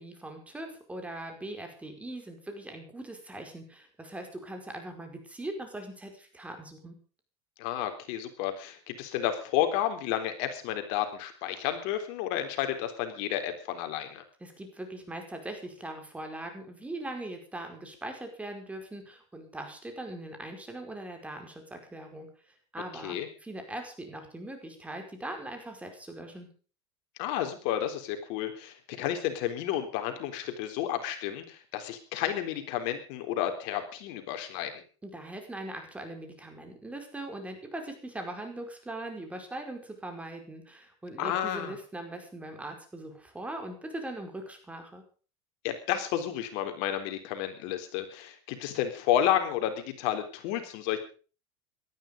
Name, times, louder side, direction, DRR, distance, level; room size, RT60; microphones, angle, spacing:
voice 1, 0.0-6.9 14.4-22.3 22.7-26.5 35.0-45.0, right 1 dB, 10° right, 4 dB, 5.0 m, -41 dB
voice 2, 7.6-14.2 23.0-23.3 27.2-34.8 41.2-41.7 45.6-51.0, left 11 dB, 65° left, 7 dB, 3.6 m, -31 dB
18.5 x 13.0 x 5.2 m, 0.38 s
supercardioid pair, 125°, 14 cm